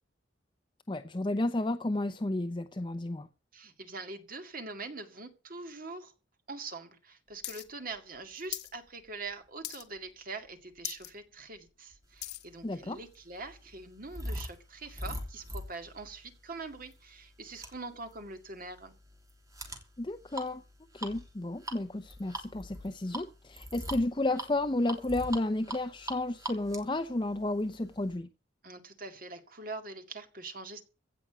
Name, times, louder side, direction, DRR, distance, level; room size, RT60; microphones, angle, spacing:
voice 1, 0.9-3.3 12.6-13.0 20.0-20.6 20.9-28.3, left 2 dB, 25° left, 0.6 m, -32 dB
voice 2, 3.5-6.1 6.5-18.9 28.6-30.8, right 3 dB, 45° right, 2.1 m, -43 dB
sound 1, 7.4-7.6 7.9-8.7 9.1-9.3 9.6-10.1 10.4-10.5 10.8-11.1 11.5-12.5 13.1-13.2, left 13 dB, 60° left, 1.6 m, -40 dB
sound 2, 12.5-28.2, right 1 dB, 15° right, 3.0 m, -43 dB
16.5 x 6.1 x 9.0 m
head